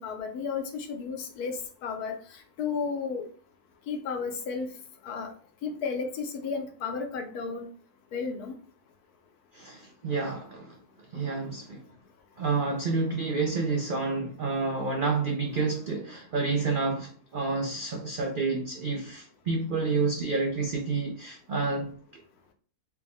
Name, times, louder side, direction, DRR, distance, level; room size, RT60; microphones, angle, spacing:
voice 1, 0.0-3.3 3.9-4.7 5.0-5.3 5.6-7.6 8.1-8.6, left 5 dB, 80° left, 1.3 m, -33 dB
voice 2, 9.5-10.8 11.1-11.8 12.4-22.2, right 4 dB, 85° right, 0.4 m, -29 dB
4.5 x 2.3 x 3.5 m
omnidirectional pair, 1.6 m